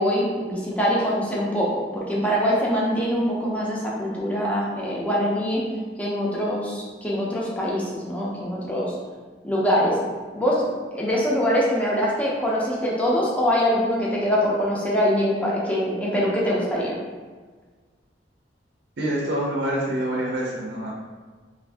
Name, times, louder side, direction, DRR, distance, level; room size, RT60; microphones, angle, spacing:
voice 1, 0.0-5.6 6.0-8.9 9.4-10.0 10.3-10.6 10.9-16.9, equal, 10° left, -5 dB, 0.6 m, -23 dB
voice 2, 19.0-20.9, right 1 dB, 65° right, -3 dB, 0.5 m, -26 dB
2.6 x 2.5 x 3.3 m, 1.4 s
head